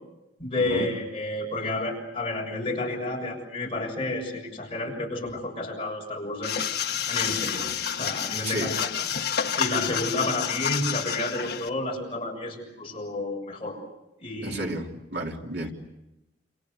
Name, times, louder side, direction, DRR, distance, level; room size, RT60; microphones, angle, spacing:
voice 1, 0.4-6.6 7.1-8.9 9.6-13.8 14.2-14.7, left 2 dB, 30° left, 0 dB, 7.1 m, -30 dB
sound 1, 6.4-11.7, left 8 dB, 60° left, 1.4 m, -29 dB
voice 2, 14.4-15.7, right 1 dB, 60° right, 1 dB, 3.4 m, -32 dB
29.5 x 28.5 x 6.8 m, 0.93 s
head